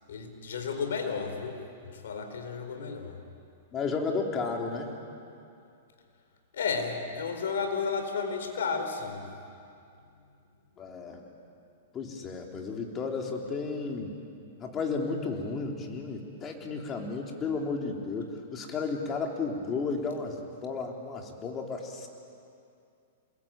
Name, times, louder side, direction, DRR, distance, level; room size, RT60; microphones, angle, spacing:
voice 1, 0.1-3.2 6.5-9.3, left 5 dB, 80° left, 5 dB, 4.5 m, -33 dB
voice 2, 3.7-4.9 10.8-11.2 11.9-14.1 14.6-22.1, left 4 dB, 25° left, 1 dB, 3.6 m, -33 dB
27.5 x 21.0 x 9.0 m, 2.5 s
hypercardioid pair, 135°, 0 cm